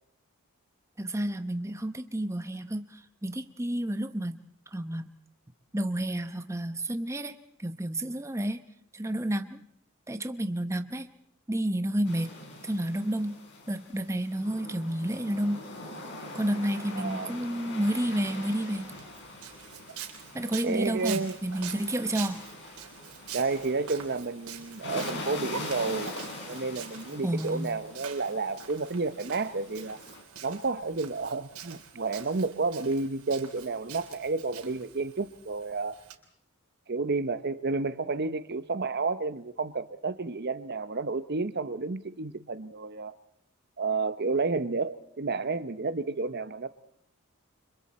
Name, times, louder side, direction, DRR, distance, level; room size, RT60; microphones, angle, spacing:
voice 1, 1.0-4.4 4.7-5.1 5.7-8.7 8.9-9.6 10.1-11.1 11.5-12.3 12.6-13.4 13.7-15.6 16.3-18.9 20.3-22.4 27.2-27.7, right 1 dB, 15° right, 8 dB, 0.9 m, -30 dB
sound 1, 12.1-30.2, left 2 dB, 55° left, 5.2 m, -43 dB
voice 2, 17.0-17.3 20.6-21.4 23.3-26.1 26.5-30.0 30.4-36.0 36.9-43.1 43.8-46.7, right 3 dB, 50° right, 12 dB, 0.9 m, -31 dB
Walk footsteps, 18.7-36.1, right 8 dB, 85° right, 3.6 m, -45 dB
30.0 x 25.5 x 4.3 m, 0.70 s
head